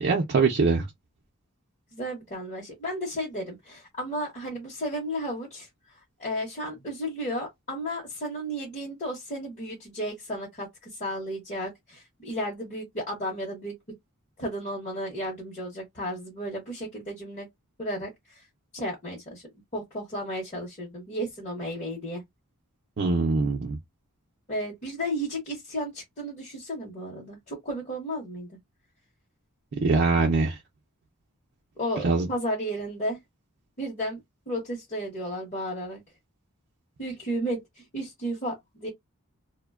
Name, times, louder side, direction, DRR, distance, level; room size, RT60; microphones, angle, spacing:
voice 1, 0.0-0.9 23.0-23.8 29.8-30.5 32.0-32.3, right 4 dB, 50° right, 0.5 m, -23 dB
voice 2, 1.9-5.7 6.2-13.7 14.4-17.5 17.8-18.4 18.7-19.4 19.7-22.2 24.5-28.6 31.8-33.2 33.8-34.2 34.5-36.0 37.0-38.9, equal, 35° left, 0.8 m, -33 dB
2.5 x 2.1 x 2.3 m
head